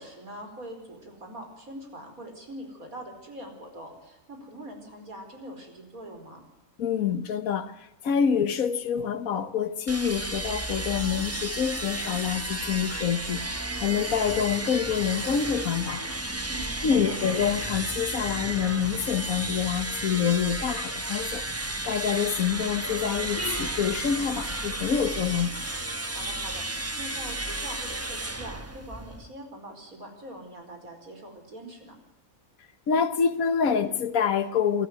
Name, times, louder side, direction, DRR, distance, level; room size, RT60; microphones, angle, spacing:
voice 1, 0.0-6.4 16.4-17.2 26.1-32.0, right 1 dB, 85° right, 5.1 m, -43 dB
voice 2, 6.8-13.4 13.8-16.1 16.8-21.4 21.8-25.6 32.9-34.9, left 7 dB, 80° left, 1.6 m, -26 dB
sound 1, 9.9-29.3, right 2 dB, 10° right, 1.0 m, -33 dB
27.0 x 13.0 x 9.5 m
omnidirectional pair, 1.5 m